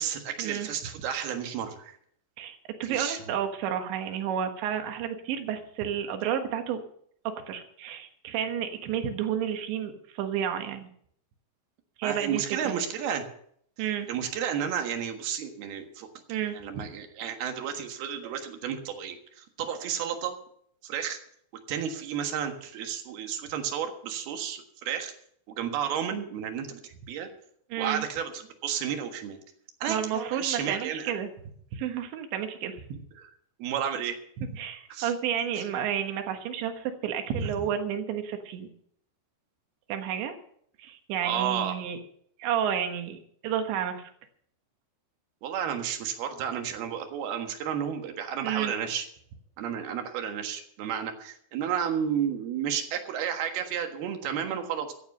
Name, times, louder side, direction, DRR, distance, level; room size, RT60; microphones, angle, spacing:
voice 1, 0.0-2.0 2.8-3.2 12.0-13.2 14.1-16.1 16.5-20.4 20.8-21.2 21.7-25.1 25.5-27.3 27.8-29.4 29.8-31.1 33.2-33.3 33.6-34.2 34.9-35.1 35.6-35.7 37.3-37.5 41.2-41.7 45.4-49.1 49.6-54.9, right 8 dB, 65° right, 5 dB, 3.3 m, -32 dB
voice 2, 2.4-6.8 7.3-10.9 12.0-12.8 13.8-14.1 16.3-16.6 27.7-28.0 29.9-31.3 31.7-33.0 34.5-38.7 39.9-40.4 40.8-42.0 42.4-44.1 48.4-48.7, right 9 dB, 85° right, 6 dB, 3.7 m, -31 dB
15.0 x 9.7 x 6.6 m, 0.65 s
omnidirectional pair, 5.0 m